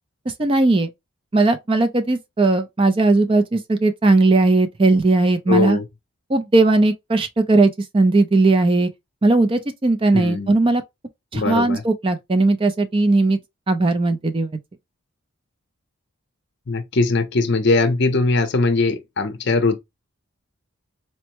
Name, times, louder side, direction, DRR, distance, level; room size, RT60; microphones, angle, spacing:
voice 1, 0.4-0.9 1.3-5.8 6.3-8.9 9.2-10.8 11.3-13.4 13.7-14.5, right 2 dB, 25° right, 0.4 m, -18 dB
voice 2, 5.5-5.8 10.1-10.5 11.3-11.8 16.7-19.8, left 3 dB, 50° left, 0.6 m, -20 dB
4.3 x 2.1 x 2.8 m
head